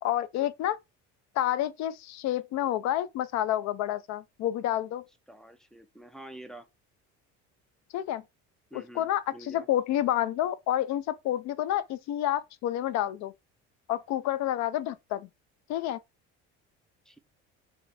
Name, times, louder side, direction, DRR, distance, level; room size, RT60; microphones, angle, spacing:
voice 1, 0.0-0.8 1.4-5.0 7.9-8.2 8.7-13.3 13.9-15.3 15.7-16.0, left 12 dB, 65° left, 0.5 m, -29 dB
voice 2, 5.3-6.7 8.7-9.7 17.1-17.2, right 1 dB, ahead, 0.4 m, -47 dB
3.2 x 2.9 x 4.0 m
cardioid pair, 125°, 30 cm